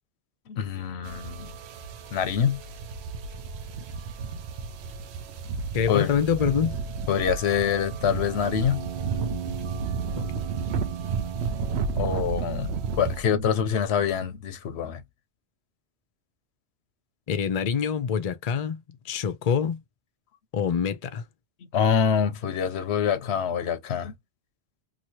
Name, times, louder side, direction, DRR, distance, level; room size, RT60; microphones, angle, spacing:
voice 1, 0.5-1.5 2.1-2.6 5.9-6.1 7.1-8.9 12.0-15.0 21.7-24.1, left 8 dB, 85° left, 0.9 m, -25 dB
sound 1, 1.0-13.2, right 5 dB, 80° right, 0.9 m, -32 dB
voice 2, 5.7-6.8 10.2-10.3 17.3-19.8 20.5-21.2, left 7 dB, 45° left, 0.6 m, -26 dB
sound 2, 8.0-14.3, right 7 dB, 55° right, 1.0 m, -38 dB
2.8 x 2.7 x 2.9 m
omnidirectional pair, 1.1 m